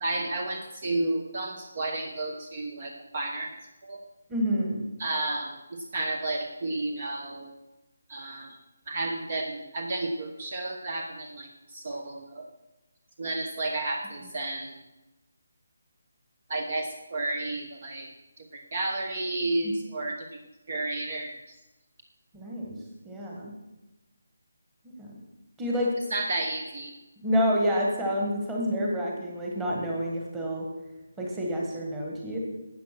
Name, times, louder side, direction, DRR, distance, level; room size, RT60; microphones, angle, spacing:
voice 1, 0.0-3.5 3.8-4.0 5.0-5.6 5.9-7.5 8.1-8.5 8.9-12.4 13.2-14.7 16.5-18.1 18.5-20.4 20.7-21.5 26.1-26.9, right 2 dB, 30° right, 3 dB, 1.0 m, -32 dB
voice 2, 4.3-4.8 22.3-22.8 23.0-23.5 25.0-25.1 25.6-25.9 27.2-30.6 31.2-32.4, equal, 5° right, -2 dB, 1.6 m, -28 dB
12.5 x 8.7 x 6.0 m, 1.0 s
hypercardioid pair, 175°, 0 cm